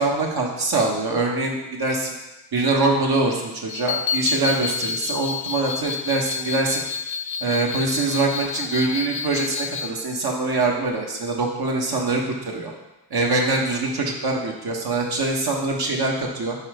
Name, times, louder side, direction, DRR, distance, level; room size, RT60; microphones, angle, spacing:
voice 1, 0.0-2.1 2.5-6.8 7.4-12.7 13.1-16.6, right 3 dB, 55° right, -1 dB, 1.4 m, -23 dB
sound 1, 3.7-9.9, left 6 dB, 70° left, 0.6 m, -29 dB
4.5 x 4.2 x 5.0 m, 1.0 s
supercardioid pair, 50°, 46 cm